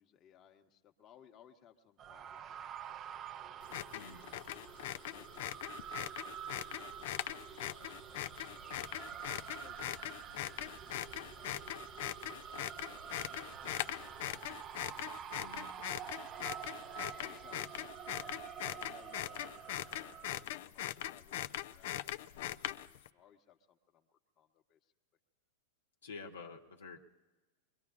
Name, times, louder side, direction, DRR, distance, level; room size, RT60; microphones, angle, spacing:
voice 1, 0.0-4.0 4.8-8.3 9.1-16.3 16.8-18.3 18.6-24.9, left 9 dB, 35° left, 3 dB, 1.2 m, -64 dB
sound 1, 2.0-20.4, right 9 dB, 30° right, 0.4 m, -48 dB
sound 2, 3.6-23.1, left 13 dB, 65° left, 0.5 m, -41 dB
sound 3, 3.7-5.5 8.2-11.2 15.8-20.0, right 1 dB, 10° right, 0.9 m, -66 dB
voice 2, 15.4-15.7 26.0-27.0, left 4 dB, 85° left, 2 dB, 1.2 m, -48 dB
23.0 x 22.5 x 2.5 m, 1.2 s
hypercardioid pair, 110°, 0 cm